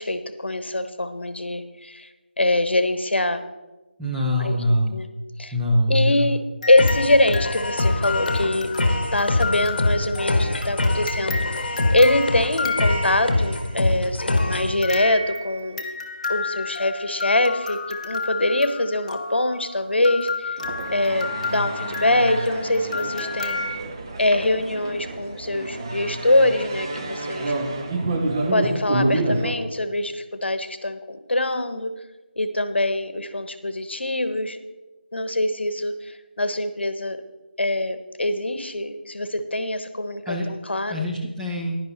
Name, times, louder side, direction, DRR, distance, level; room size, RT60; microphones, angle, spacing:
voice 1, 0.0-2.1 2.4-3.4 4.4-4.6 4.9-5.1 5.4-5.5 5.9-6.4 6.7-8.7 9.1-11.5 11.9-15.8 16.3-20.6 20.9-23.8 24.2-27.5 28.5-31.9 32.4-34.6 35.1-37.2 37.6-41.0, left 1 dB, 80° left, 10 dB, 1.1 m, -23 dB
voice 2, 4.0-5.0 5.5-6.3 40.3-40.5 40.9-41.8, left 1 dB, 5° right, -4 dB, 0.3 m, -23 dB
sound 1, 6.6-13.6 14.4-23.8, left 4 dB, 35° left, 1.0 m, -32 dB
sound 2, 6.8-14.8, left 2 dB, 60° left, 1.7 m, -24 dB
sound 3, 20.6-29.5, right 2 dB, 25° right, 0.7 m, -28 dB
10.5 x 10.5 x 4.0 m, 1.1 s
figure-of-eight pair, 170°, 6 cm